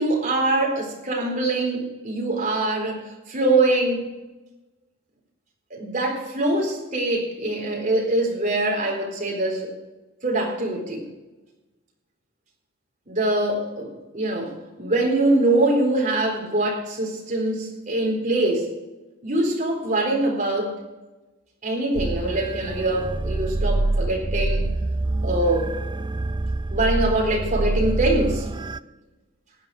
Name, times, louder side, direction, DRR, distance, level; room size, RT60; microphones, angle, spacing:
voice 1, 0.0-4.1 5.7-9.7 10.2-11.1 13.1-18.7 19.2-20.8 21.6-24.8 25.2-25.8 26.7-28.5, right 2 dB, 40° right, 0 dB, 4.1 m, -23 dB
sound 1, 22.0-28.8, right 2 dB, 20° right, 0.4 m, -26 dB
15.5 x 9.6 x 4.9 m, 1.1 s
head